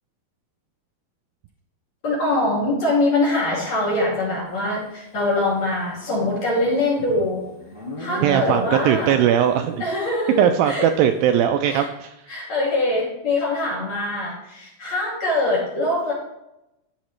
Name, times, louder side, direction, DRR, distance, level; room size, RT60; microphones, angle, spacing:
voice 1, 2.0-7.5 8.0-9.2 9.8-10.9 11.7-11.9 12.3-16.1, left 2 dB, 50° left, -4 dB, 3.4 m, -23 dB
Livestock farm animals working animals, 5.9-9.2, right 2 dB, 25° left, 2.4 m, -34 dB
voice 2, 8.2-9.8 10.4-12.1, right 9 dB, 80° right, 7 dB, 2.1 m, -19 dB
13.0 x 7.3 x 3.2 m, 0.88 s
omnidirectional pair, 4.5 m